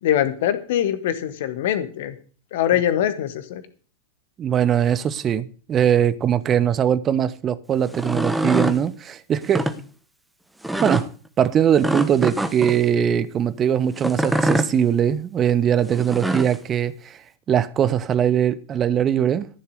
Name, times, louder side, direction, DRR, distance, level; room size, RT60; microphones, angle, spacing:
voice 1, 0.0-2.1 2.5-3.6, left 11 dB, 55° left, 1.6 m, -23 dB
voice 2, 4.4-9.7 10.8-11.1 11.4-17.2 17.5-19.5, right 9 dB, 25° right, 1.0 m, -21 dB
sound 1, 7.9-8.8 9.4-9.8 10.6-11.1 11.8-12.8 14.0-14.7 15.9-16.6, right 1 dB, 5° right, 1.1 m, -24 dB
14.0 x 7.2 x 6.6 m
figure-of-eight pair, 90°, 0 cm